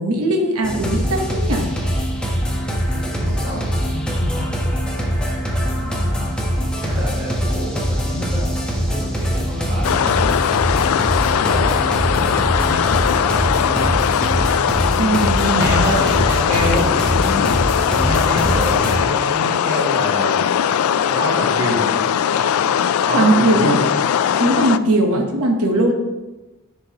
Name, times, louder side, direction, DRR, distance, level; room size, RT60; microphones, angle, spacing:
voice 1, 0.0-1.7 15.0-15.8 23.1-23.8 24.3-25.9, right 1 dB, 80° right, 2 dB, 1.0 m, -19 dB
sound 1, 0.6-18.9, equal, 5° left, 1.1 m, -22 dB
voice 2, 2.9-4.6 5.7-6.4 6.8-8.4 8.8-10.2 11.2-14.3 15.5-17.5 17.9-20.5 21.1-21.8 23.0-23.8 25.1-25.2, equal, 25° right, -9 dB, 1.9 m, -27 dB
sound 2, 9.8-24.8, left 8 dB, 80° left, 0.3 m, -19 dB
10.5 x 5.2 x 2.9 m, 1.1 s
head